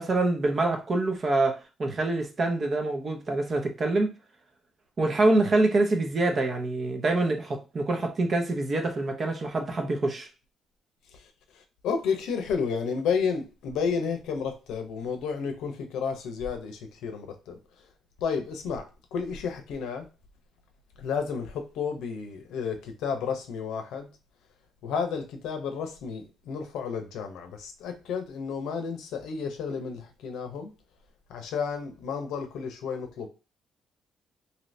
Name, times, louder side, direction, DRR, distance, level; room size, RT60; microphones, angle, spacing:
voice 1, 0.0-4.1 5.0-10.3, right 2 dB, 45° right, 0.8 m, -25 dB
voice 2, 11.8-17.6 18.2-20.1 21.0-24.1 24.8-30.7 31.3-33.3, left 6 dB, 85° left, 0.6 m, -31 dB
2.8 x 2.6 x 3.1 m
cardioid pair, 90°, 0 cm